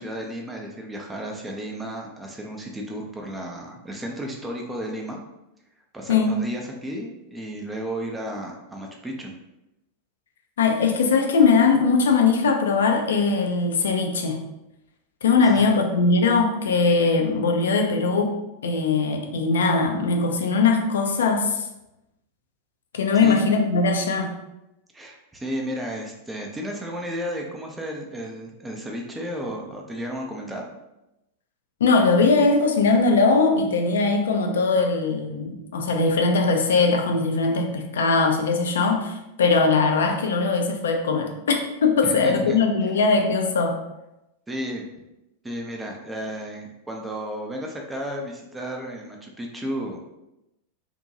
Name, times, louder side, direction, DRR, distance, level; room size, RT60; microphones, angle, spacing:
voice 1, 0.0-5.2 5.9-9.3 15.4-15.7 23.2-23.4 24.9-30.7 42.0-42.6 44.5-44.8 45.4-50.0, equal, 10° right, 0 dB, 0.4 m, -33 dB
voice 2, 10.6-14.4 15.2-18.4 18.6-21.6 22.9-24.4 31.8-43.8, left 4 dB, 65° left, 3 dB, 0.4 m, -20 dB
2.6 x 2.1 x 2.7 m, 0.91 s
figure-of-eight pair, 90°, 0 cm